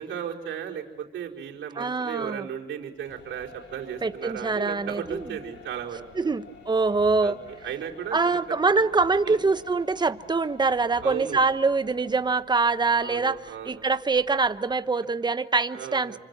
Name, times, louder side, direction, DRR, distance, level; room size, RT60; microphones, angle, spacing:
voice 1, 0.0-6.3 7.2-7.3 7.6-8.9 9.2-9.4 11.0-11.4 12.9-13.9 15.7-16.2, right 9 dB, 70° right, -4 dB, 4.9 m, -35 dB
voice 2, 1.8-2.5 4.0-5.3 6.2-7.4 8.1-13.4 13.6-16.2, right 4 dB, 20° right, 12 dB, 1.1 m, -24 dB
sound 1, 2.9-14.8, left 5 dB, 70° left, 4.7 m, -50 dB
29.5 x 25.5 x 7.5 m, 1.1 s
cardioid pair, 90°, 20 cm